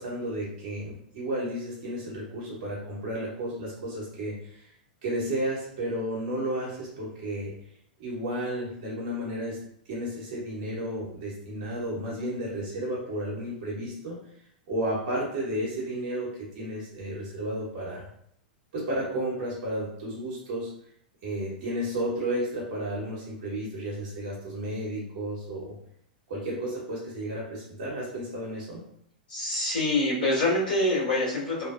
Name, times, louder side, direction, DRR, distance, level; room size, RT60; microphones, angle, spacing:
voice 1, 0.0-4.7 5.0-7.5 8.0-9.6 9.9-14.2 14.7-18.0 18.7-20.7 21.2-25.8 26.3-28.8, right 1 dB, 55° right, -5 dB, 1.0 m, -32 dB
voice 2, 29.3-31.7, left 1 dB, 75° left, -10 dB, 1.4 m, -25 dB
2.8 x 2.4 x 2.4 m, 0.70 s
figure-of-eight pair, 95°, 5 cm